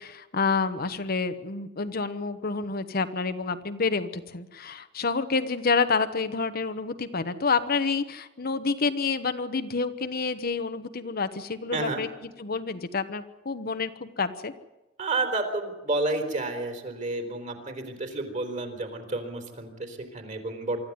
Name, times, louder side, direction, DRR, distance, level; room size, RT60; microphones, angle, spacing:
voice 1, 0.0-14.5, left 4 dB, 50° left, 10 dB, 1.1 m, -28 dB
voice 2, 11.7-12.0 15.0-20.8, right 2 dB, 40° right, 6 dB, 3.9 m, -30 dB
24.5 x 14.0 x 9.6 m, 1.1 s
head